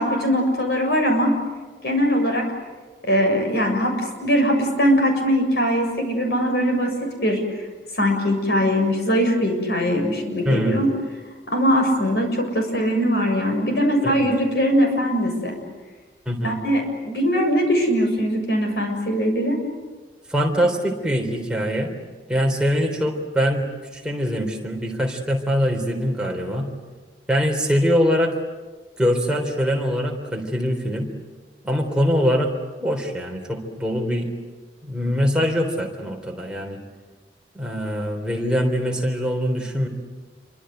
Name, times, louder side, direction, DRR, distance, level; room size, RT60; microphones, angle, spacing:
voice 1, 0.0-1.4 1.8-2.4 3.0-7.4 8.0-10.9 11.5-15.6 16.4-19.6, equal, 65° left, 3 dB, 7.2 m, -21 dB
voice 2, 10.5-10.8 14.0-14.3 16.3-16.6 20.3-21.9 22.3-23.6 23.9-26.7 27.3-28.3 29.0-31.1 31.6-32.5 32.8-34.3 34.8-36.8 37.5-39.9, equal, 5° right, 1 dB, 3.7 m, -23 dB
28.5 x 25.0 x 8.1 m, 1.4 s
head